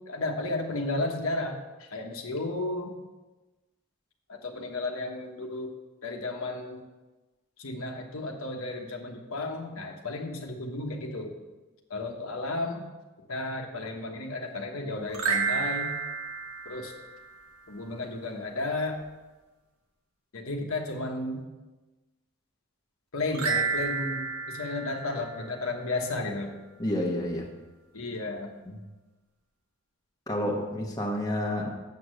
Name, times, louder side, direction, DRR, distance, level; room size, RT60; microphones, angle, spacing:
voice 1, 0.1-2.9 4.3-5.7 6.0-6.8 7.6-11.3 11.9-12.9 13.3-15.9 16.6-16.9 17.7-19.0 20.3-21.4 23.1-26.5 27.9-28.5 30.4-30.7, left 2 dB, 70° left, 2 dB, 1.2 m, -33 dB
sound 1, 15.1-17.6 23.3-25.9, right 5 dB, 90° right, 1.2 m, -31 dB
voice 2, 26.8-27.5 28.7-28.8 30.3-31.7, left 1 dB, 15° left, -1 dB, 1.1 m, -29 dB
7.8 x 6.4 x 6.3 m, 1.2 s
head